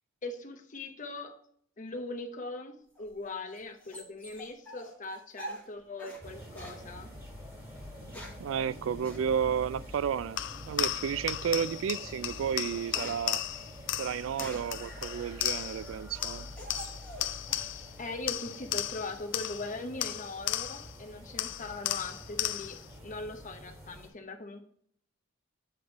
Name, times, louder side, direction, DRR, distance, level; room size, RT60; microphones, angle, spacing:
voice 1, 0.2-1.4 1.8-7.1 18.0-24.6, left 2 dB, 40° left, 6 dB, 0.8 m, -40 dB
sound 1, 3.0-6.2 6.5-6.8 7.8-8.5 9.0-9.2 10.7-11.1 11.6-11.8 12.2-14.8 15.4-17.7 18.0-18.6, equal, 10° left, 1.4 m, -46 dB
sound 2, 6.2-24.1, equal, 10° right, 2.1 m, -47 dB
voice 2, 8.4-10.4 10.7-13.4 14.0-16.5, right 7 dB, 75° right, 18 dB, 0.3 m, -32 dB
sound 3, 10.4-15.9 16.2-18.0 18.3-21.0 21.4-22.9, left 13 dB, 65° left, 0.4 m, -35 dB
7.9 x 3.5 x 5.0 m, 0.62 s
head